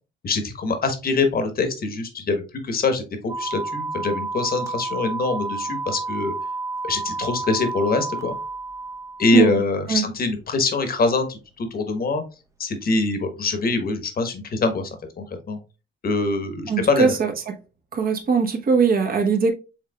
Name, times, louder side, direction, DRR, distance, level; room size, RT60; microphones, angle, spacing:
voice 1, 0.2-3.0 3.4-6.3 6.8-8.3 9.2-12.2 12.6-14.9 15.2-15.6 16.0-17.2, left 3 dB, 50° left, 1.2 m, -24 dB
sound 1, 3.3-9.6, right 3 dB, 15° right, 0.7 m, -30 dB
voice 2, 16.7-17.5 17.9-19.5, right 5 dB, 45° right, 1.1 m, -20 dB
6.4 x 3.5 x 2.3 m
cardioid pair, 90°, 20 cm